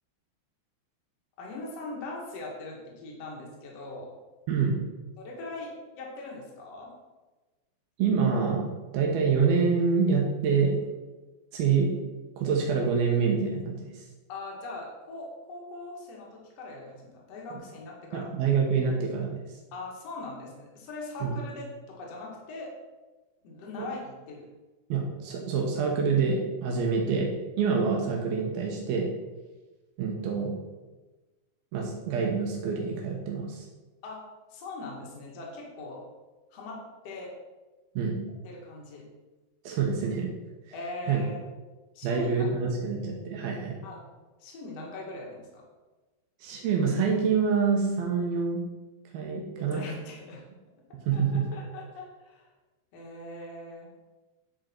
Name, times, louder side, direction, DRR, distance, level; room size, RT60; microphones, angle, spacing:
voice 1, 1.4-4.1 5.2-6.9 14.3-18.3 19.7-22.7 23.4-24.4 34.0-34.2 34.5-36.0 36.5-37.3 38.4-39.0 40.7-41.4 41.9-42.3 43.8-44.0 44.4-45.6 49.6-50.4 51.1-52.5 52.9-53.9, left 2 dB, 50° left, -2 dB, 2.4 m, -41 dB
voice 2, 8.0-8.7 8.9-10.7 11.5-11.9 12.4-14.1 18.1-19.6 21.2-21.4 24.9-27.3 27.6-29.1 30.0-30.6 31.7-33.7 38.0-38.2 39.6-40.3 41.1-41.2 42.0-43.8 46.4-48.6 49.1-49.8 51.1-51.4, right 5 dB, 80° right, -1 dB, 2.9 m, -26 dB
9.9 x 5.2 x 4.4 m, 1.2 s
omnidirectional pair, 4.4 m